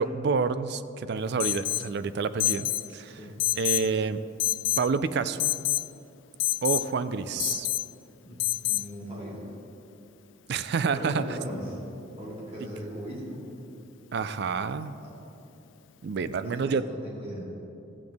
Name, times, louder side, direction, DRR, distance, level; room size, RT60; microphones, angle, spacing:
voice 1, 0.0-3.2 3.6-4.2 4.8-5.6 6.6-7.7 10.5-11.3 14.1-15.0 16.0-16.8, right 5 dB, 50° right, 14 dB, 0.3 m, -28 dB
Alarm, 1.4-1.9 2.4-2.9 3.4-3.9 4.4-4.9 5.4-5.9 6.4-6.8 7.4-7.8 8.4-8.8, left 16 dB, 60° left, 0.3 m, -27 dB
voice 2, 8.6-9.4 10.7-11.8 12.2-13.4 14.8-15.1 16.4-17.5, equal, 30° right, -6 dB, 2.6 m, -38 dB
14.0 x 8.0 x 3.5 m, 2.8 s
head